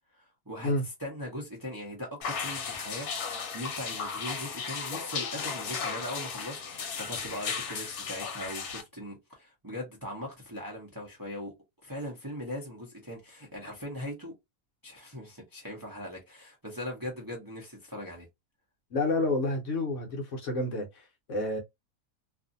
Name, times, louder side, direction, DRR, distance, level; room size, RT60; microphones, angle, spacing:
voice 1, 0.1-0.7 1.0-3.1 3.5-11.6 11.8-14.3 14.8-18.3, left 1 dB, 20° right, 0.7 m, -40 dB
sound 1, 2.2-8.8, left 6 dB, 80° left, 1.2 m, -35 dB
voice 2, 18.9-21.6, left 2 dB, 65° left, 1.0 m, -29 dB
2.6 x 2.6 x 2.6 m
omnidirectional pair, 1.5 m